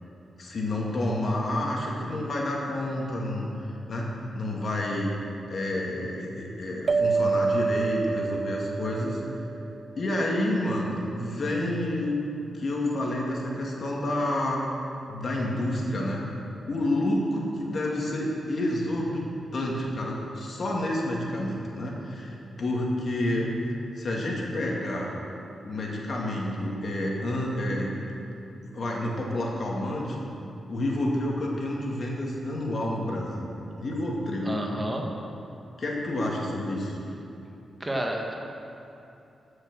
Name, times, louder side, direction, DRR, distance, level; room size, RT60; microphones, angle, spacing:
voice 1, 0.4-5.2 5.5-9.5 10.0-12.2 12.5-14.6 15.1-16.3 16.7-19.2 19.5-25.1 25.6-27.9 28.6-30.2 30.7-33.5 33.8-34.5 35.8-37.0, left 1 dB, 60° left, -2 dB, 2.4 m, -29 dB
sound 1, 6.9-9.9, right 4 dB, 55° right, 0.3 m, -27 dB
voice 2, 34.4-35.0 37.8-38.3, right 1 dB, 20° right, 0 dB, 1.7 m, -30 dB
14.0 x 6.5 x 6.3 m, 2.8 s
cardioid pair, 60°, 0 cm